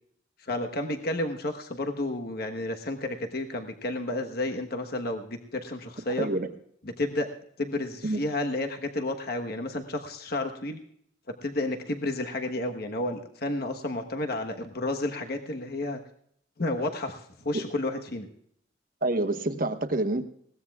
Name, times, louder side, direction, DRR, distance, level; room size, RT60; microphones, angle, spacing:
voice 1, 0.4-6.3 7.0-7.3 7.6-10.8 11.4-16.0 16.6-18.3, left 2 dB, 55° left, 4 dB, 1.2 m, -31 dB
voice 2, 6.2-6.5 8.0-8.2 19.0-20.2, right 2 dB, 50° right, 7 dB, 1.2 m, -27 dB
21.0 x 17.5 x 2.4 m, 0.66 s
head